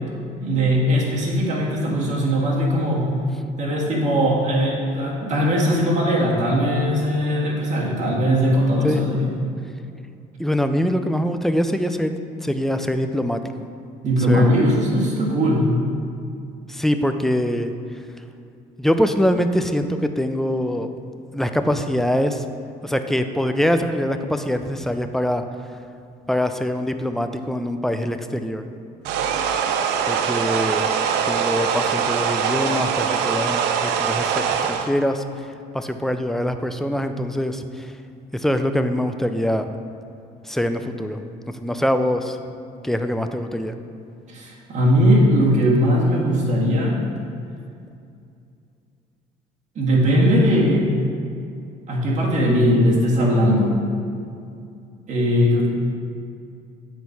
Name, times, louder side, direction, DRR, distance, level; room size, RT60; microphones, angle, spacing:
voice 1, 0.4-3.1 3.6-9.3 14.0-15.7 44.3-47.0 49.7-50.9 51.9-53.8 55.1-55.7, equal, 45° right, -3 dB, 1.6 m, -19 dB
voice 2, 10.4-13.7 14.3-14.6 16.7-17.7 18.8-20.9 21.3-22.4 22.8-25.4 26.3-28.7 30.1-30.8 31.3-35.2 35.7-37.9 38.3-39.7 40.4-41.2 41.5-42.4 42.8-43.7, equal, ahead, 7 dB, 0.3 m, -23 dB
sound 1, 29.0-34.9, right 7 dB, 90° right, 0.5 m, -22 dB
8.3 x 4.1 x 4.6 m, 2.5 s
cardioid pair, 110°, 17 cm